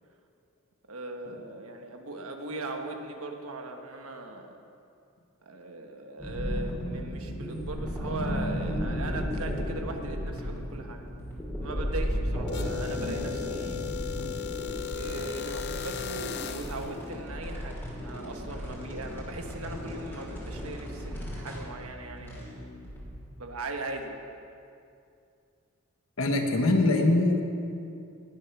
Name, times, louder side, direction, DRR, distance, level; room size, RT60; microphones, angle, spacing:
voice 1, 0.9-4.6 5.4-11.1 11.6-13.9 14.9-22.7 23.4-24.2, right 2 dB, 80° right, 4 dB, 1.3 m, -39 dB
sound 1, 6.2-23.2, equal, 10° left, 2.6 m, -35 dB
sound 2, 12.5-16.9, left 9 dB, 50° left, 0.6 m, -36 dB
voice 2, 26.2-27.4, left 2 dB, 70° left, 3 dB, 1.3 m, -23 dB
19.5 x 6.7 x 6.0 m, 2.5 s
head